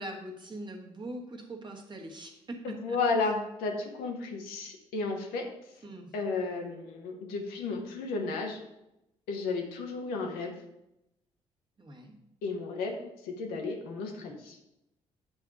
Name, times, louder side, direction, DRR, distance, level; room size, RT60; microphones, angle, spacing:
voice 1, 0.0-3.0 5.8-6.1 11.8-12.1, right 1 dB, 30° right, 1 dB, 1.5 m, -42 dB
voice 2, 2.6-5.5 6.1-8.6 9.3-10.5 12.4-14.6, left 4 dB, 65° left, 2 dB, 1.1 m, -33 dB
8.9 x 3.5 x 5.0 m, 0.86 s
figure-of-eight pair, 45°, 17 cm